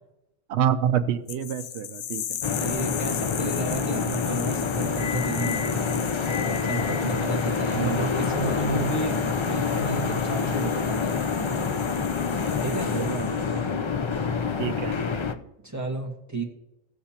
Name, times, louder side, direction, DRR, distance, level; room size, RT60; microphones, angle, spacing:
voice 1, 0.5-2.4 7.7-8.1 12.9-13.3 14.6-15.0, right 9 dB, 70° right, 8 dB, 1.0 m, -27 dB
sound 1, 1.3-13.6, left 10 dB, 75° left, 0.8 m, -38 dB
sound 2, 2.4-15.3, left 5 dB, 40° left, 0.4 m, -27 dB
voice 2, 2.6-6.0 6.6-11.4 12.6-13.0 15.3-16.4, right 3 dB, 15° right, 0 dB, 1.5 m, -32 dB
18.0 x 6.6 x 2.9 m, 0.91 s
omnidirectional pair, 1.2 m